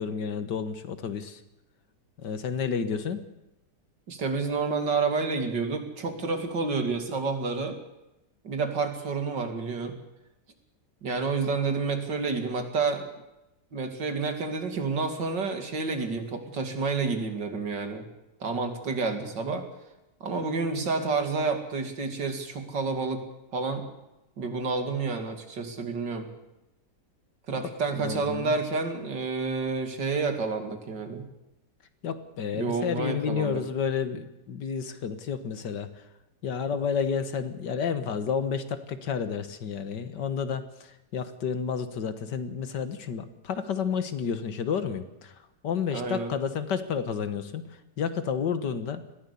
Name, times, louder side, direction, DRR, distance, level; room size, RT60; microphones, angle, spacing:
voice 1, 0.0-1.4 2.2-3.2 28.0-28.6 32.0-35.9 36.4-45.3 45.6-47.6 48.0-49.0, left 6 dB, 75° left, 11 dB, 2.1 m, -30 dB
voice 2, 4.1-7.8 8.4-10.0 11.0-13.1 13.7-18.1 18.4-19.7 20.2-23.3 23.5-23.9 24.4-26.3 27.5-31.2 32.5-33.6 45.9-46.3, right 4 dB, 85° right, 6 dB, 3.2 m, -29 dB
20.5 x 15.5 x 8.5 m, 0.93 s
omnidirectional pair, 1.9 m